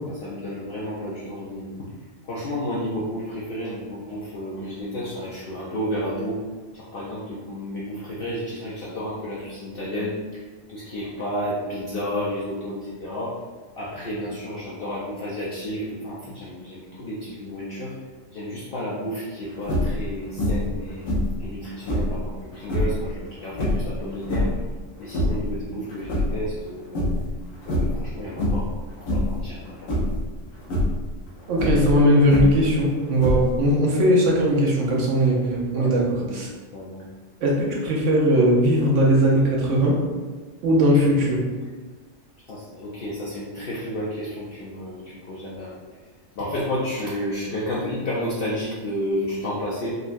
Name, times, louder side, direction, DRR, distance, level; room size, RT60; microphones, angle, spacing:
voice 1, 0.1-1.9 2.2-6.4 6.7-10.4 10.7-13.4 13.8-17.9 18.3-24.5 25.0-27.0 27.7-28.7 29.0-29.9 35.7-36.4 36.7-37.1 42.5-45.7 46.3-49.9, equal, 60° left, -7 dB, 0.6 m, -31 dB
sound 1, 19.6-20.0 20.4-20.8 21.0-22.2 22.6-23.0 23.5-24.7 25.0-25.5 25.9-26.7 26.9-27.3 27.6-28.0 28.4-28.7 29.0-29.4 29.9-30.2 30.6-31.0 31.5-32.7 33.2-33.7, left 1 dB, 90° left, 1.2 m, -24 dB
voice 2, 31.5-36.0 36.3-36.5 37.4-40.0 40.6-41.4, equal, 70° right, -2 dB, 1.0 m, -19 dB
3.8 x 2.1 x 2.5 m, 1.4 s
omnidirectional pair, 1.4 m